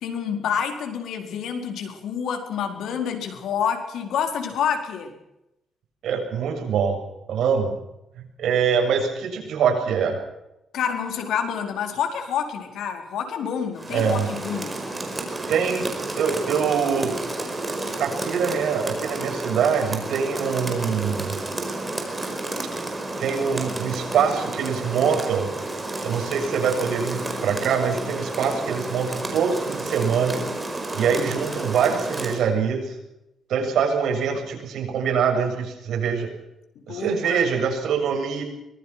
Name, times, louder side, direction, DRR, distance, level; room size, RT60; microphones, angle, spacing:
voice 1, 0.0-5.1 10.7-14.8 36.8-37.4, left 7 dB, 90° left, 5 dB, 4.5 m, -28 dB
voice 2, 6.0-7.0 7.3-7.8 8.2-10.2 13.9-14.3 15.5-17.2 18.0-21.4 23.2-25.5 26.0-30.4 30.9-33.0 33.5-36.3 36.9-38.4, right 6 dB, 80° right, 3 dB, 7.2 m, -24 dB
Rain, 13.7-32.5, right 2 dB, 15° right, 4.9 m, -31 dB
24.0 x 20.5 x 6.0 m, 0.89 s
cardioid pair, 130°, 0 cm